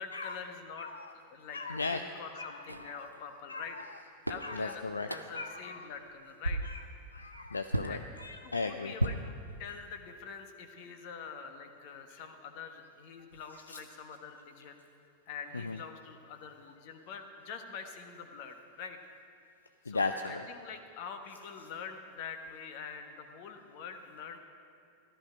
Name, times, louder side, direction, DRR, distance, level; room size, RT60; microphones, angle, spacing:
voice 1, 0.0-3.8 4.3-6.6 7.8-8.0 8.4-9.3 9.6-14.8 15.3-19.0 19.8-24.4, left 6 dB, 45° left, 6 dB, 1.3 m, -45 dB
voice 2, 1.5-2.0 2.4-2.9 3.5-3.7 4.4-5.1 5.3-5.8 6.6-6.8 7.1-8.9 15.6-15.8 19.9-20.4, left 3 dB, 80° left, 7 dB, 0.4 m, -36 dB
sound 1, 2.7-2.9 3.8-3.9 4.3-4.5 5.1-5.5 5.9-6.1 6.4-6.9 7.7-8.0 9.0-9.9, right 1 dB, 90° right, 0.5 m, -34 dB
14.0 x 12.5 x 5.2 m, 2.4 s
figure-of-eight pair, 90°, 0 cm